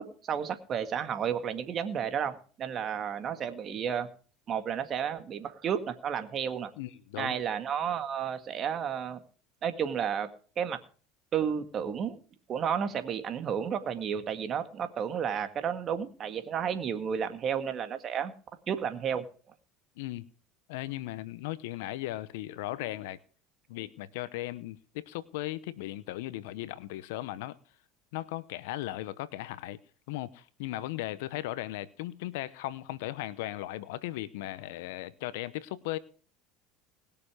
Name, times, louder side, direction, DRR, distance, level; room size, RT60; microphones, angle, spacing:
voice 1, 0.0-4.1 4.5-6.7 7.2-9.2 9.6-10.3 10.6-10.8 11.3-12.2 12.5-18.3 18.7-19.2, right 8 dB, 40° right, 9 dB, 1.9 m, -32 dB
voice 2, 6.8-7.4 20.0-20.3 20.7-23.2 23.7-27.6 28.1-29.8 30.1-36.0, left 15 dB, 75° left, 17 dB, 0.8 m, -37 dB
20.5 x 6.9 x 5.0 m, 0.40 s
hypercardioid pair, 90°, 0 cm